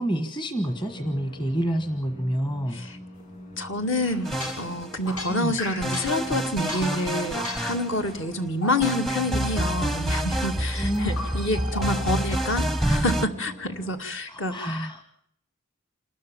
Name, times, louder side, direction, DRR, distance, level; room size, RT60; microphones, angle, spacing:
voice 1, 0.0-2.8 5.3-5.6 10.7-11.1 14.3-15.0, equal, 20° left, 7 dB, 1.3 m, -28 dB
sound 1, 0.6-14.0, equal, 40° left, 5.4 m, -44 dB
voice 2, 3.6-15.0, left 1 dB, 60° left, 6 dB, 2.1 m, -28 dB
sound 2, 3.9-6.3 6.7-8.2 8.6-9.2 9.5-10.1 10.7-12.7, left 2 dB, 85° left, 6.9 m, -38 dB
sound 3, 4.2-5.1 5.8-8.3 8.8-13.3, right 1 dB, ahead, 0.7 m, -28 dB
28.0 x 13.0 x 7.2 m, 0.71 s
head